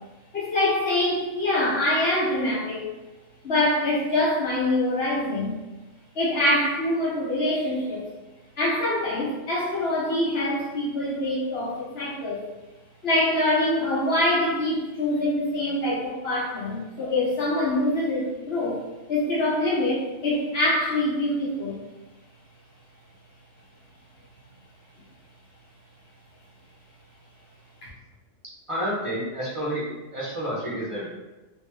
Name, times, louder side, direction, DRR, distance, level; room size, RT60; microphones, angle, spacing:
voice 1, 0.3-2.8 3.4-5.5 6.1-8.0 8.6-12.4 13.0-18.8 19.1-21.8 27.8-27.9, left 1 dB, 50° left, -5 dB, 1.1 m, -24 dB
voice 2, 28.7-31.1, equal, 25° right, -6 dB, 0.9 m, -30 dB
3.4 x 2.6 x 3.1 m, 1.1 s
omnidirectional pair, 1.4 m